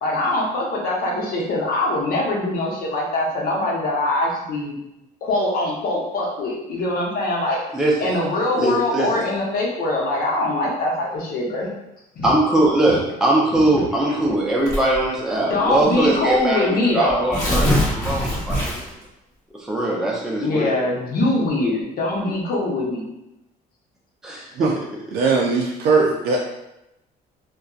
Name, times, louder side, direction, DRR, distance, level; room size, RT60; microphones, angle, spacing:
voice 1, 0.0-4.8 5.2-7.6 8.0-11.7 12.2-12.3 13.5-13.6 14.1-14.2 15.5-17.3 20.4-23.1, left 2 dB, 60° left, -3 dB, 0.9 m, -23 dB
voice 2, 7.7-8.1 8.6-9.2 12.2-18.8 19.7-20.8 24.2-24.7, right 1 dB, 5° right, -4 dB, 0.5 m, -21 dB
Tearing, 14.7-15.1 15.9-16.0 16.3-16.4 17.1-19.0, left 1 dB, 20° left, 1.1 m, -22 dB
voice 3, 25.1-26.4, right 4 dB, 70° right, -1 dB, 0.4 m, -19 dB
2.7 x 2.2 x 2.3 m, 0.90 s
cardioid pair, 110°, 17 cm